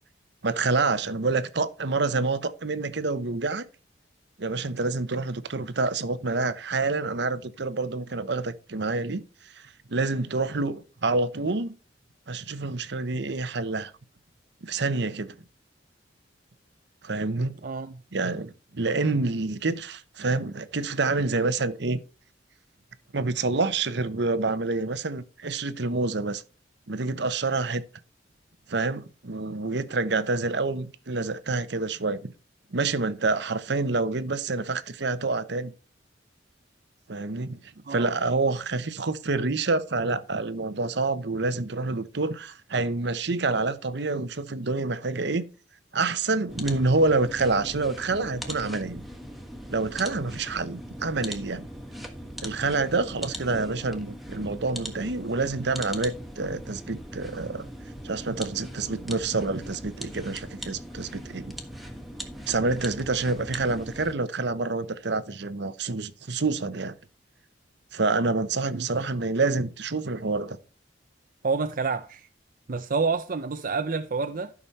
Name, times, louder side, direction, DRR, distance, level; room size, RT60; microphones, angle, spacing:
voice 1, 0.4-3.6 4.4-9.2 9.6-9.7 9.9-11.7 12.3-13.9 14.6-15.3 17.0-17.6 18.1-22.0 23.1-26.4 26.9-27.8 28.7-32.3 32.7-35.7 37.1-37.6 37.9-45.5 45.9-49.0 49.7-51.7 52.4-57.7 58.0-61.5 62.5-67.0 67.9-70.6, right 3 dB, 65° right, 0.9 m, -27 dB
voice 2, 17.6-18.0 37.8-38.1 68.7-68.9 71.4-72.3 72.7-74.5, right 4 dB, 50° right, 0.6 m, -28 dB
sound 1, 46.5-64.1, equal, ahead, 1.4 m, -40 dB
12.0 x 6.2 x 4.2 m
head